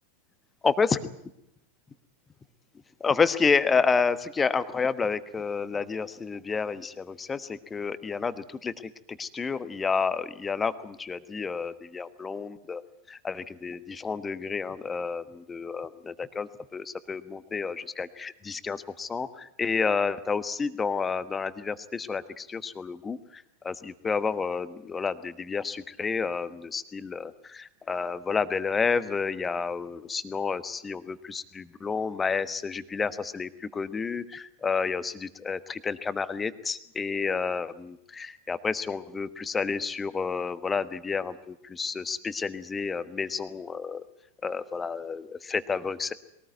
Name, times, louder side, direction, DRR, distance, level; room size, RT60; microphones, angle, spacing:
voice 1, 0.6-1.0 3.0-12.8 13.1-44.0 44.4-46.1, left 5 dB, 15° left, 14 dB, 1.2 m, -30 dB
22.5 x 18.5 x 9.3 m, 0.80 s
figure-of-eight pair, 90°, 0 cm